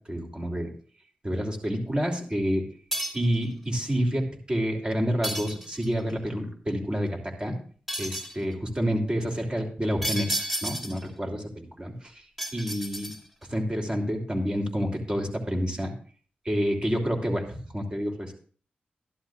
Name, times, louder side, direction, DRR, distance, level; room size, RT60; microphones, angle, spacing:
voice 1, 0.1-0.7 1.2-2.7 3.1-7.6 8.0-12.2 12.5-13.1 13.5-15.9 16.4-18.3, equal, 25° right, 2 dB, 2.9 m, -28 dB
sound 1, 2.9-3.4 5.2-6.0 7.9-8.4 10.0-11.1 12.4-13.4, right 1 dB, 5° right, 2.4 m, -32 dB
13.0 x 11.5 x 2.4 m, 0.43 s
cardioid pair, 50°, 4 cm